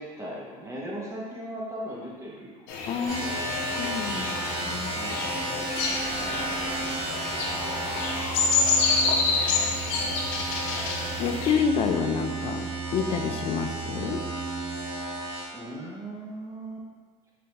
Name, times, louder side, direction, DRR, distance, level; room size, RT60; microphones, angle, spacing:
voice 1, 0.0-2.6 3.3-3.5 5.0-5.6 15.5-16.9, right 1 dB, 20° right, -5 dB, 0.7 m, -38 dB
sound 1, 2.7-11.5, left 4 dB, 85° left, 0.6 m, -28 dB
voice 2, 2.9-3.4 3.8-5.0 6.3-6.4 11.2-12.7 12.9-14.2, left 6 dB, 45° left, 5 dB, 0.4 m, -28 dB
sound 2, 3.1-15.4, right 2 dB, 55° right, 1.4 m, -33 dB
sound 3, 5.6-10.5, equal, 80° right, 1.2 m, -43 dB
3.8 x 3.3 x 2.8 m, 1.5 s
cardioid pair, 140°, 14 cm